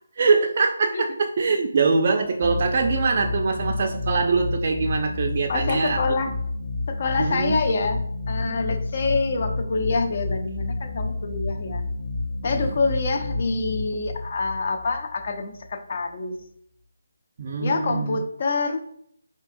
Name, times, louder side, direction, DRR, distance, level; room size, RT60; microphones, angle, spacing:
voice 1, 0.2-6.2 7.2-7.6 12.7-12.8 17.4-18.2, right 4 dB, 45° right, 2 dB, 0.4 m, -23 dB
sound 1, 2.4-15.7, left 3 dB, 25° left, 1.5 m, -30 dB
voice 2, 5.5-6.3 6.9-8.0 8.3-11.8 12.4-16.4 17.6-18.8, left 3 dB, 45° left, 5 dB, 0.6 m, -26 dB
4.6 x 2.7 x 2.5 m, 0.67 s
figure-of-eight pair, 155°, 0 cm